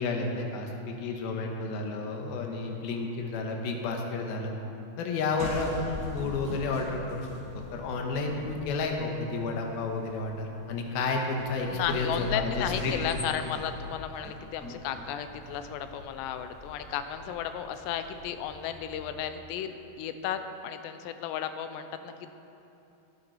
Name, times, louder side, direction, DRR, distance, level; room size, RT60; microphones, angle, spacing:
voice 1, 0.0-4.5 5.0-7.3 7.5-13.2, left 3 dB, 70° left, 2 dB, 2.8 m, -31 dB
sound 1, 5.4-19.1, left 1 dB, 5° left, 1.0 m, -42 dB
voice 2, 11.7-22.3, left 9 dB, 90° left, 9 dB, 2.9 m, -34 dB
16.0 x 10.5 x 4.6 m, 2.8 s
omnidirectional pair, 4.8 m